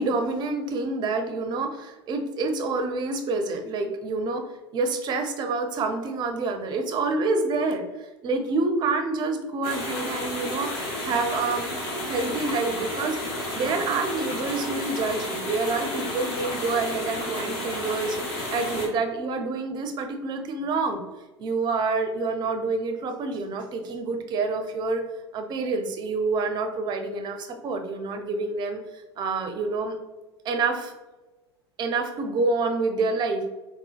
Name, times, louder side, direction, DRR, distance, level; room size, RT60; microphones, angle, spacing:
voice 1, 0.0-4.5 4.7-7.8 8.2-13.2 13.5-21.0 21.4-25.0 25.3-28.8 29.2-30.0 30.4-30.9 31.8-33.4, right 3 dB, 30° right, 5 dB, 0.5 m, -27 dB
sound 1, 9.6-18.9, left 1 dB, 50° left, 1.0 m, -31 dB
3.8 x 2.2 x 2.4 m, 1.1 s
figure-of-eight pair, 80°, 14 cm